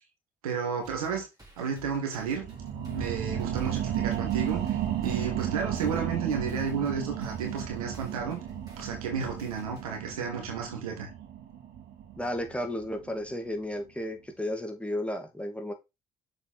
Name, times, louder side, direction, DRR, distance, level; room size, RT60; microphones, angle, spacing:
voice 1, 0.4-1.2 1.6-2.5 2.9-8.4 8.8-11.1, right 6 dB, 85° right, 1.7 m, -32 dB
sound 1, 0.8-10.0, equal, 20° right, 4.1 m, -53 dB
sound 2, 2.2-13.3 13.8-13.9, right 10 dB, 65° right, 1.8 m, -34 dB
voice 2, 12.2-15.7, left 1 dB, 5° left, 2.3 m, -33 dB
6.6 x 5.0 x 4.2 m
hypercardioid pair, 45°, 18 cm